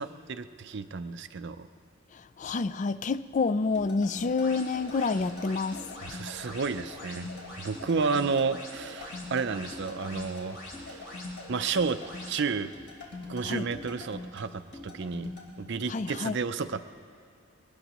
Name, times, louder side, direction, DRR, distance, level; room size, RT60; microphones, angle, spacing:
voice 1, 0.0-1.7 6.0-7.3 7.6-10.6 10.9-11.0 11.5-12.0 12.3-12.7 13.3-15.3 15.6-16.8, right 5 dB, 55° right, 10 dB, 0.5 m, -31 dB
voice 2, 2.1-5.9 13.4-13.7 15.9-16.4, left 4 dB, 35° left, 15 dB, 0.3 m, -28 dB
sound 1, 3.8-15.5, left 2 dB, 55° left, 3.2 m, -44 dB
sound 2, 4.2-12.3, left 1 dB, 85° left, 3.9 m, -45 dB
22.5 x 19.0 x 3.0 m, 2.5 s
head